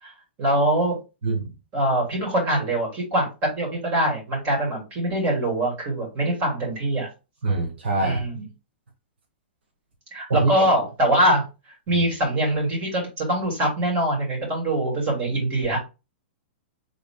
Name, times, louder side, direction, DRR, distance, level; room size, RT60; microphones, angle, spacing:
voice 1, 0.4-0.9 1.7-3.3 3.5-7.1 8.0-8.4 10.1-11.4 11.9-15.8, right 1 dB, 30° right, 3.0 m, -23 dB
voice 2, 7.4-8.2 10.3-10.7 11.9-12.0, right 3 dB, 85° right, 1.6 m, -24 dB
3.9 x 3.6 x 3.7 m
hypercardioid pair, 150°, 6 cm